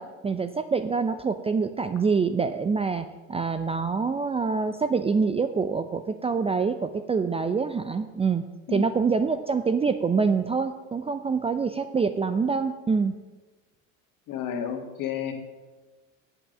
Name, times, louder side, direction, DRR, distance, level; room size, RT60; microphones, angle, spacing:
voice 1, 0.0-8.4 8.7-13.1, right 5 dB, 15° right, 10 dB, 0.5 m, -26 dB
voice 2, 8.7-9.1 14.3-15.3, left 8 dB, 55° left, 5 dB, 1.9 m, -32 dB
8.6 x 7.9 x 6.6 m, 1.2 s
hypercardioid pair, 75°, 40 cm